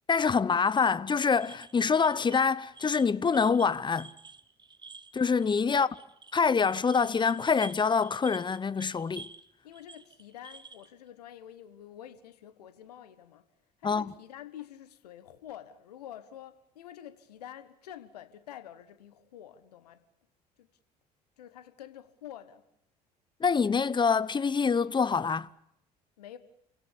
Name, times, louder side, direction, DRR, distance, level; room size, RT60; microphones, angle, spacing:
voice 1, 0.1-4.1 5.1-5.9 6.3-9.3 13.8-14.1 23.4-25.5, left 5 dB, 25° left, 0.9 m, -25 dB
sound 1, 1.4-9.5 9.7-10.9, right 4 dB, 20° right, 1.3 m, -50 dB
voice 2, 9.6-13.4 13.8-20.0 20.6-20.7 21.4-22.6 26.2-26.4, left 11 dB, 75° left, 1.4 m, -47 dB
28.0 x 17.0 x 8.7 m
figure-of-eight pair, 55°, 20 cm